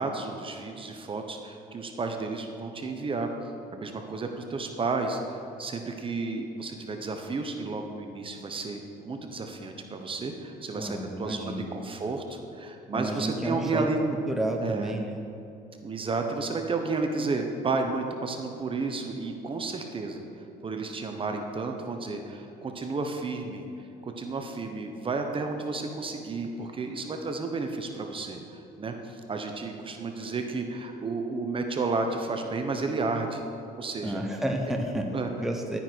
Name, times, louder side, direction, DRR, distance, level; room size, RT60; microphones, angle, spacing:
voice 1, 0.0-3.3 3.7-14.0 14.6-15.0 15.8-20.2 20.6-23.6 24.0-33.4 33.8-34.2 35.1-35.3 35.7-35.8, right 3 dB, 30° right, 4 dB, 1.2 m, -32 dB
voice 2, 10.8-11.8 12.9-13.9 14.3-15.2 34.0-35.0 35.4-35.8, right 1 dB, ahead, 2 dB, 1.0 m, -31 dB
11.5 x 9.5 x 4.7 m, 2.7 s
cardioid pair, 110°, 17 cm